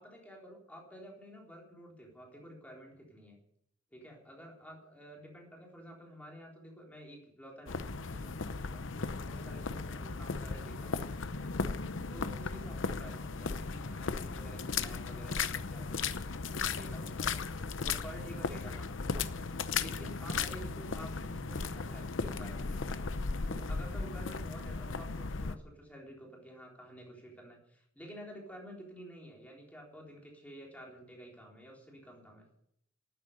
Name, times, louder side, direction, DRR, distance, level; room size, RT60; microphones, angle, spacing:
voice 1, 0.0-3.4 3.9-17.5 17.8-19.3 19.8-23.1 23.5-32.6, equal, 10° left, -1 dB, 3.9 m, -51 dB
sound 1, 7.7-25.5, left 4 dB, 80° left, 0.8 m, -36 dB
13.0 x 9.4 x 9.7 m, 0.73 s
head